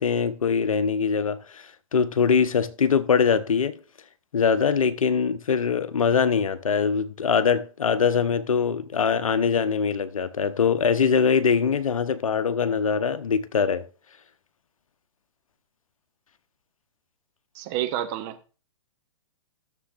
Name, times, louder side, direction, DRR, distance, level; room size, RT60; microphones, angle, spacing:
voice 1, 0.0-1.7 1.9-3.8 4.3-13.9, left 6 dB, 80° left, 0.7 m, -22 dB
voice 2, 17.5-18.6, right 12 dB, 35° right, 1.0 m, -30 dB
14.5 x 6.9 x 2.5 m
hypercardioid pair, 120°, 17 cm